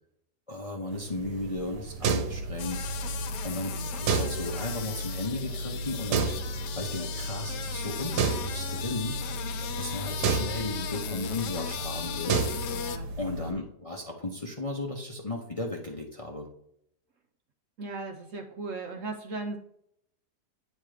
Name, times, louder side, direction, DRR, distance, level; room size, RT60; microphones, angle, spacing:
voice 1, 0.5-2.8 3.4-6.3 6.7-9.2 9.8-12.4 13.2-16.5, left 2 dB, 30° left, 0 dB, 0.7 m, -35 dB
sound 1, 0.9-13.5, right 3 dB, 80° right, 1.3 m, -32 dB
sound 2, 2.6-13.0, left 9 dB, 90° left, 1.3 m, -38 dB
voice 2, 3.4-3.9 12.7-13.1 17.8-19.6, right 3 dB, 60° right, 4 dB, 0.9 m, -38 dB
9.1 x 3.2 x 4.9 m, 0.73 s
omnidirectional pair, 1.8 m